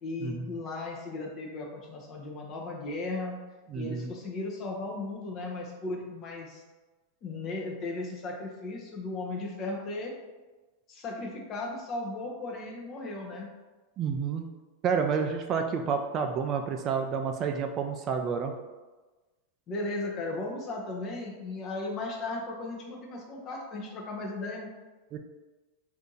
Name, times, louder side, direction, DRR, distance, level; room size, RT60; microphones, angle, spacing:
voice 1, 0.0-3.4 3.7-6.6 7.2-10.1 10.9-13.5 19.7-24.7, left 2 dB, 40° left, 0 dB, 0.7 m, -36 dB
voice 2, 3.7-4.1 14.0-14.4 14.8-18.5 25.1-25.2, right 6 dB, 35° right, 4 dB, 0.3 m, -29 dB
2.7 x 2.5 x 3.7 m, 1.2 s
hypercardioid pair, 105°, 0 cm